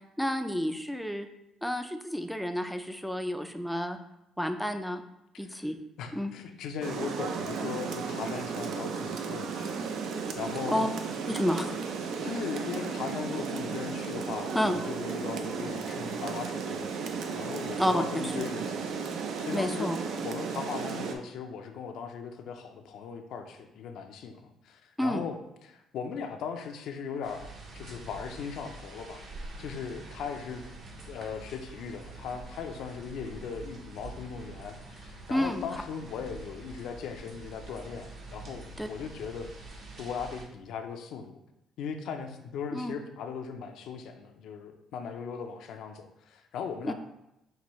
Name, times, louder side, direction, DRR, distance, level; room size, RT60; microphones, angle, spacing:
voice 1, 0.2-1.3 1.6-4.0 4.4-5.0 5.4-5.8 6.1-6.3 10.7-10.9 11.3-11.7 14.5-14.7 17.8-18.0 18.4-18.5 19.5-20.0 25.0-25.2 35.3-35.6 38.8-38.9 42.7-42.9 46.8-46.9, equal, ahead, 6 dB, 0.3 m, -30 dB
voice 2, 5.3-5.7 6.0-9.8 10.3-10.9 11.5-11.8 12.2-19.0 19.4-19.9 20.2-29.2 29.6-30.6 31.1-39.5 40.0-41.4 41.8-46.9, left 6 dB, 75° left, 6 dB, 0.5 m, -38 dB
Rain, 6.8-21.1, right 5 dB, 70° right, 0.5 m, -34 dB
sound 1, 27.2-40.4, right 2 dB, 50° right, 0.9 m, -46 dB
5.7 x 2.6 x 3.0 m, 0.86 s
cardioid pair, 95°, 0 cm